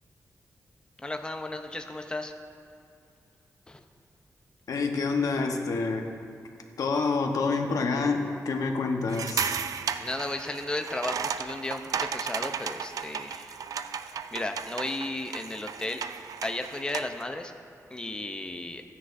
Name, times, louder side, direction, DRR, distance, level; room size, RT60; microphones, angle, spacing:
voice 1, 1.0-2.3 3.7-3.8 10.0-13.6 13.9-16.0 16.4-17.5 17.9-18.8, left 2 dB, 15° left, 5 dB, 0.6 m, -34 dB
voice 2, 4.7-6.1 6.8-9.6, left 4 dB, 80° left, 3 dB, 1.0 m, -27 dB
sound 1, 9.1-17.2, right 7 dB, 80° right, 0.3 m, -34 dB
15.5 x 9.7 x 2.6 m, 2.4 s
wide cardioid pair, 145°, 6 cm